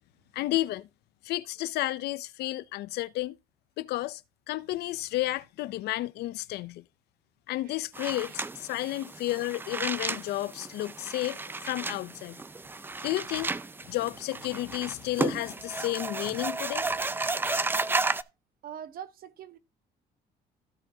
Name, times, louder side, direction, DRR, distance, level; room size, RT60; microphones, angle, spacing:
voice 1, 0.3-0.9 1.2-3.4 3.8-4.2 4.5-6.8 7.5-12.4 13.0-13.5 13.9-16.9, left 16 dB, 75° left, 0.5 m, -32 dB
sound 1, 7.9-18.2, right 3 dB, 10° right, 0.4 m, -33 dB
voice 2, 8.7-9.0 18.6-19.6, right 9 dB, 60° right, 1.0 m, -43 dB
16.0 x 6.1 x 2.7 m
cardioid pair, 110°, 17 cm